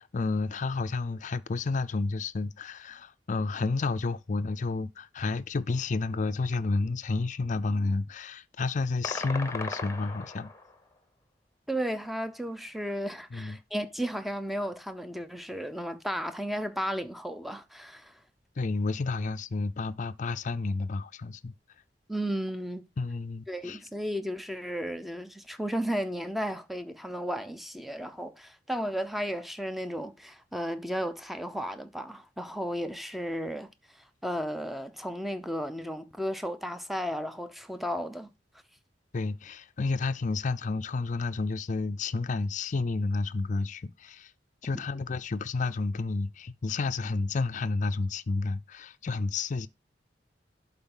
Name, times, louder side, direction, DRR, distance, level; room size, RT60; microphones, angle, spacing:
voice 1, 0.0-10.5 13.3-13.6 18.6-21.5 23.0-23.8 39.1-44.3 44.6-49.7, left 3 dB, 45° left, 0.4 m, -31 dB
sound 1, 9.0-10.8, left 3 dB, 15° left, 0.9 m, -37 dB
voice 2, 11.7-18.2 22.1-22.9 23.5-33.7 34.2-38.3, equal, ahead, 0.6 m, -34 dB
11.5 x 4.0 x 3.7 m
head